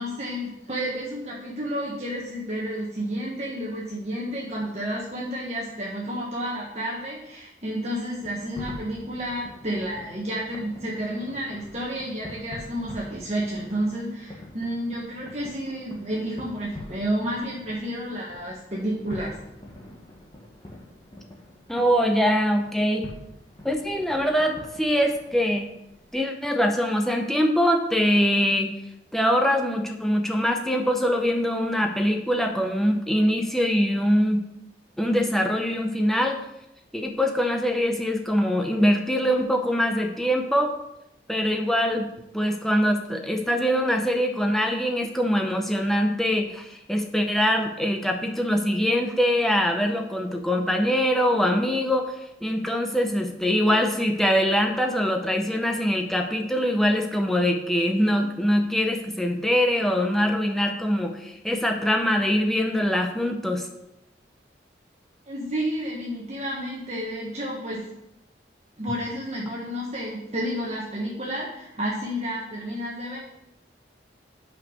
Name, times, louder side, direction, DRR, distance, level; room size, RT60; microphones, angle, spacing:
voice 1, 0.0-19.4 65.3-67.9 68.8-73.2, equal, 40° right, -4 dB, 1.2 m, -31 dB
sound 1, 8.1-26.1, left 1 dB, 25° left, 1.3 m, -45 dB
voice 2, 21.7-23.1 23.6-25.7 26.1-28.7 29.1-34.4 35.0-36.4 36.9-40.7 41.3-42.1 42.3-63.7, equal, ahead, 3 dB, 0.6 m, -23 dB
5.6 x 5.3 x 6.3 m, 0.85 s
head